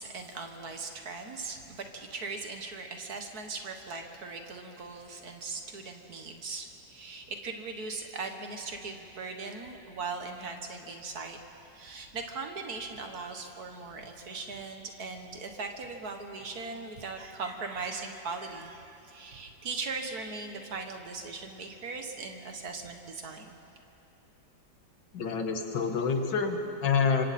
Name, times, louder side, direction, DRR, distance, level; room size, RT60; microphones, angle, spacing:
voice 1, 0.0-11.4 11.7-23.6, right 4 dB, 55° right, 4 dB, 1.8 m, -39 dB
voice 2, 25.1-27.2, left 5 dB, 70° left, 5 dB, 2.0 m, -27 dB
25.5 x 25.5 x 4.3 m, 2.7 s
omnidirectional pair, 2.0 m